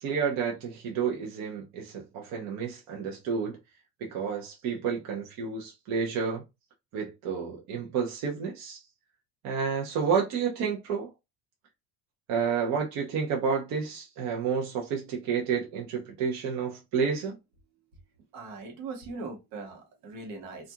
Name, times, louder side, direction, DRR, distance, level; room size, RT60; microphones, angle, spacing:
voice 1, 0.0-3.6 4.0-6.4 6.9-8.8 9.4-11.1 12.3-17.4, right 6 dB, 55° right, 0.7 m, -30 dB
voice 2, 18.3-20.7, right 3 dB, 80° right, 1.2 m, -40 dB
2.5 x 2.4 x 2.7 m
cardioid pair, 165°, 33 cm